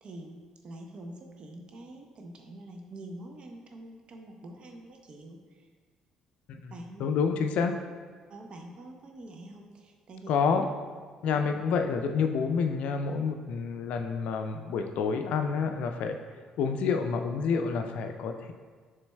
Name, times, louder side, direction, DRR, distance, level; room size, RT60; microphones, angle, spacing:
voice 1, 0.0-5.7 6.7-7.1 8.3-10.3, right 1 dB, 50° right, 3 dB, 0.7 m, -46 dB
voice 2, 6.5-7.8 10.3-10.7 11.2-16.2 16.6-18.5, left 5 dB, 65° left, 6 dB, 0.4 m, -28 dB
6.8 x 3.2 x 2.2 m, 1.5 s
hypercardioid pair, 55°, 2 cm